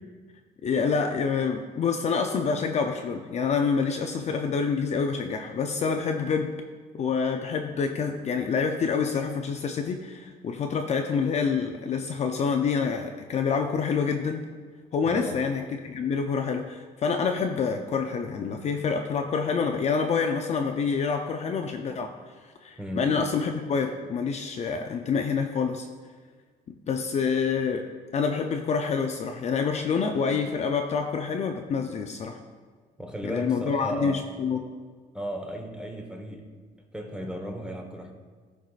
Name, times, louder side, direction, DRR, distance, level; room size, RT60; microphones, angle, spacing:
voice 1, 0.6-6.5 6.9-14.4 14.9-22.1 22.6-25.9 26.7-27.8 28.1-32.4 33.2-34.7, left 5 dB, 40° left, 4 dB, 0.5 m, -27 dB
voice 2, 15.0-15.5 22.8-23.2 33.0-34.2 35.1-36.6 36.9-38.1, equal, 5° right, 3 dB, 1.1 m, -35 dB
14.0 x 4.8 x 2.4 m, 1.5 s
cardioid pair, 110°, 17 cm